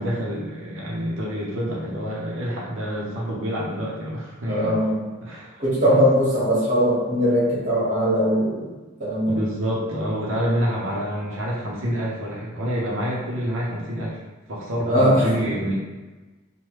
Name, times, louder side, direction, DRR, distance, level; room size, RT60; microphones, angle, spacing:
voice 1, 0.0-4.7 5.2-5.6 5.9-6.0 9.3-14.2 14.5-15.8, equal, 75° right, -5 dB, 0.6 m, -27 dB
voice 2, 4.5-5.0 5.6-8.7 9.0-9.4 14.9-15.3, equal, 40° right, -9 dB, 1.3 m, -20 dB
3.1 x 2.1 x 3.0 m, 1.2 s
head